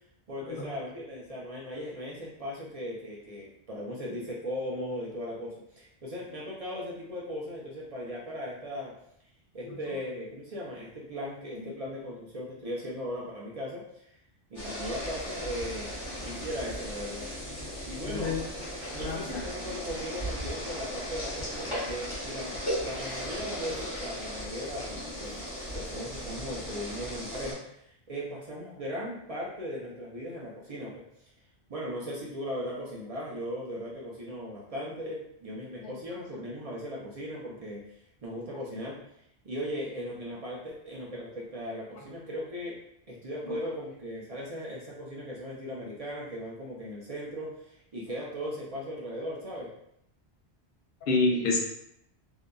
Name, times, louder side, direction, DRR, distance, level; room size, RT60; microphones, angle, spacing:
voice 1, 0.3-8.9 9.5-14.1 14.5-15.9 16.2-17.2 17.8-18.4 18.9-22.6 22.8-31.0 31.7-37.8 38.2-39.0 39.4-42.8 43.1-49.7, equal, 45° right, -5 dB, 0.5 m, -38 dB
sound 1, 14.5-27.5, equal, 25° left, 1.1 m, -37 dB
voice 2, 18.0-18.4 19.0-19.4 51.0-51.6, left 3 dB, 65° left, -1 dB, 0.7 m, -28 dB
2.7 x 2.3 x 2.2 m, 0.75 s
omnidirectional pair, 1.1 m